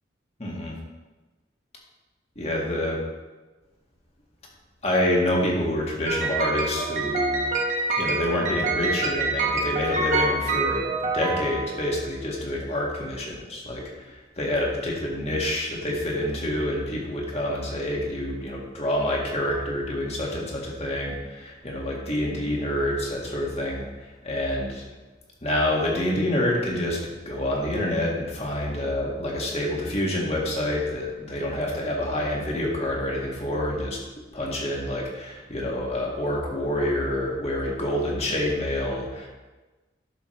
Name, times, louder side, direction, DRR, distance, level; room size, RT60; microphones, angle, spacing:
voice 1, 0.4-0.7 2.4-3.0 4.8-7.5 8.0-10.9 11.1-24.8 25.4-27.0 27.3-39.3, left 1 dB, 35° left, -2 dB, 1.8 m, -27 dB
sound 1, 6.1-12.1, right 3 dB, 40° right, 1.2 m, -27 dB
12.0 x 6.4 x 3.3 m, 1.2 s
head